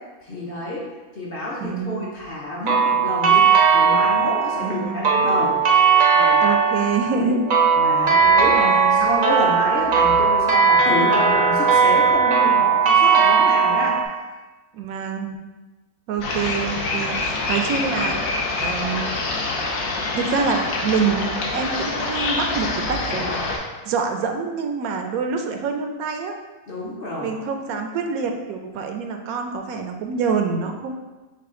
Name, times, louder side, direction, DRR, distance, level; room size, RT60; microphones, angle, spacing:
voice 1, 0.2-0.9 1.1-3.5 3.7-5.6 6.1-6.4 7.2-7.3 7.8-14.0 26.7-27.4, left 1 dB, 50° left, -4 dB, 0.8 m, -28 dB
voice 2, 1.6-2.1 4.6-5.3 6.4-7.5 8.6-9.1 14.7-15.4 16.1-18.2 18.6-19.1 20.1-23.4 23.8-26.4 27.2-30.9, right 5 dB, 80° right, 4 dB, 1.0 m, -26 dB
sound 1, 2.7-14.0, right 6 dB, 50° right, 0.6 m, -17 dB
sound 2, 16.2-23.6, left 3 dB, 75° left, 1.1 m, -26 dB
6.5 x 2.2 x 3.6 m, 1.2 s
omnidirectional pair, 1.5 m